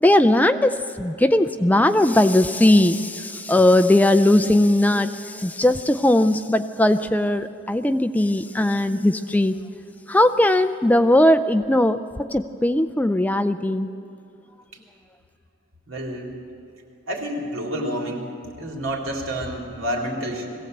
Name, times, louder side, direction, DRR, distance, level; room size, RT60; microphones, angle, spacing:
voice 1, 0.0-9.6 10.1-13.9, left 1 dB, 10° left, 10 dB, 0.4 m, -19 dB
voice 2, 15.9-16.4 17.1-18.3 18.6-20.5, equal, 75° right, 0 dB, 3.6 m, -29 dB
21.0 x 16.5 x 8.0 m, 2.8 s
head